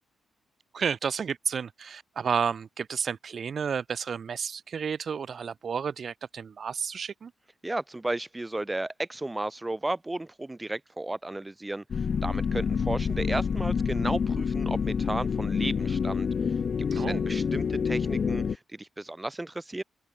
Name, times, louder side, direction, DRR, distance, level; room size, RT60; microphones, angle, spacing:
voice 1, 0.7-7.3 16.9-17.2, right 6 dB, 40° right, 5.0 m, -31 dB
voice 2, 7.6-16.3 16.8-19.8, right 2 dB, 10° right, 1.5 m, -34 dB
sound 1, 11.9-18.6, left 6 dB, 35° left, 0.4 m, -27 dB
open air
wide cardioid pair, 175°, 0 cm